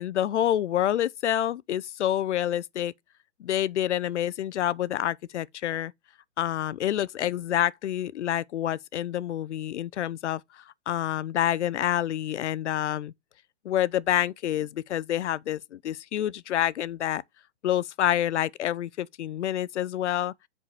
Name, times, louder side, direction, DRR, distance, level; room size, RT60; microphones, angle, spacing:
voice 1, 0.0-2.9 3.4-5.9 6.4-13.1 13.6-17.2 17.6-20.3, left 11 dB, 85° left, 0.6 m, -28 dB
5.1 x 4.8 x 5.6 m
hypercardioid pair, 150°, 34 cm